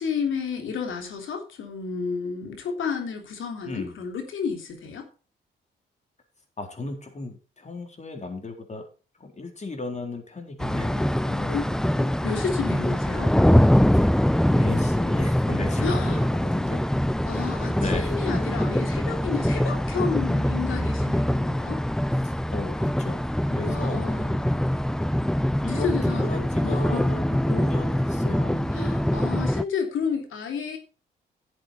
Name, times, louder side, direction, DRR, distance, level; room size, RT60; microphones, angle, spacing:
voice 1, 0.0-5.0 11.5-13.3 15.8-16.2 17.3-21.8 23.6-24.4 25.7-27.2 28.7-30.8, left 5 dB, 70° left, 3.3 m, -31 dB
voice 2, 3.6-3.9 6.6-8.8 9.2-11.7 13.9-14.0 14.4-16.8 17.7-18.1 22.5-23.2 23.5-24.2 25.6-28.7, left 3 dB, 35° left, 3.8 m, -35 dB
sound 1, 10.6-29.6, equal, 5° left, 0.5 m, -23 dB
12.0 x 7.6 x 4.4 m
supercardioid pair, 65°, 21 cm